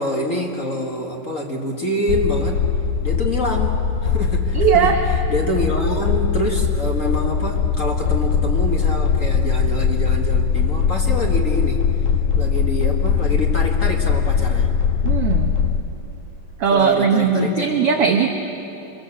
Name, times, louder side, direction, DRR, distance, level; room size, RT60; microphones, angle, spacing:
voice 1, 0.0-2.6 3.0-11.9 12.4-14.8 16.7-17.6 18.0-18.2, left 1 dB, 35° left, 1 dB, 1.3 m, -26 dB
sound 1, 2.1-15.8, left 6 dB, 80° left, 2.5 m, -20 dB
voice 2, 4.5-5.0 15.0-15.5 16.6-18.3, right 6 dB, 60° right, 3 dB, 1.6 m, -18 dB
25.0 x 22.0 x 7.4 m, 2.9 s
omnidirectional pair, 3.8 m